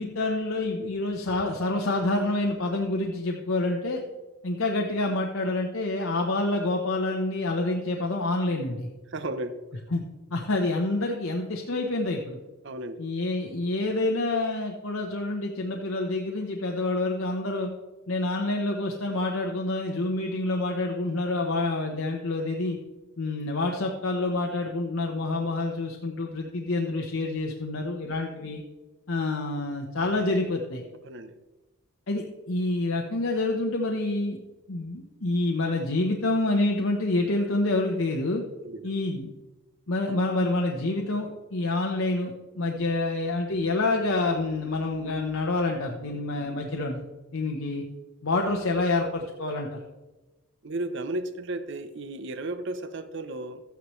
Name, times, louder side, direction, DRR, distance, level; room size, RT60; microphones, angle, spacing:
voice 1, 0.0-4.0 4.4-8.9 9.9-10.0 10.3-12.4 13.0-17.7 18.1-22.8 23.2-28.6 29.1-30.8 32.1-34.4 34.7-38.4 38.8-39.3 39.9-47.0 47.3-47.8 48.2-49.8, left 2 dB, 70° left, 1 dB, 1.0 m, -27 dB
voice 2, 9.1-9.8 12.6-13.0 31.0-31.3 38.6-38.9 50.6-53.6, right 2 dB, 60° right, 11 dB, 0.8 m, -34 dB
13.5 x 9.3 x 3.2 m, 1.1 s
head